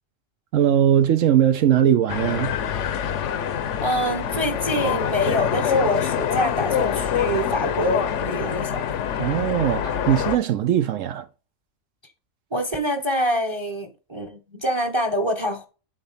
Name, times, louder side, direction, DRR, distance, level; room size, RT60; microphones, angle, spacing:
voice 1, 0.5-2.5 9.2-11.3, right 10 dB, 75° right, 1.0 m, -20 dB
sound 1, 2.1-10.4, left 8 dB, 65° left, 1.0 m, -25 dB
voice 2, 3.8-8.8 12.5-15.7, equal, 20° right, 1.0 m, -25 dB
7.8 x 4.0 x 5.6 m
omnidirectional pair, 1.4 m